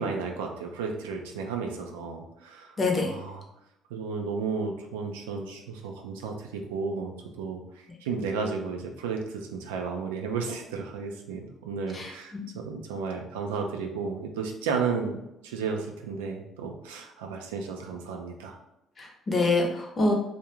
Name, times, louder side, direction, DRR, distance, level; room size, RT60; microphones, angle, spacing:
voice 1, 0.0-2.7 3.0-3.4 3.9-7.6 8.0-18.6, right 5 dB, 85° right, 3 dB, 0.3 m, -33 dB
voice 2, 2.8-3.1 11.9-12.4 19.0-20.1, left 2 dB, 40° left, 1 dB, 0.7 m, -26 dB
2.4 x 2.1 x 3.0 m, 0.88 s
hypercardioid pair, 55°, 0 cm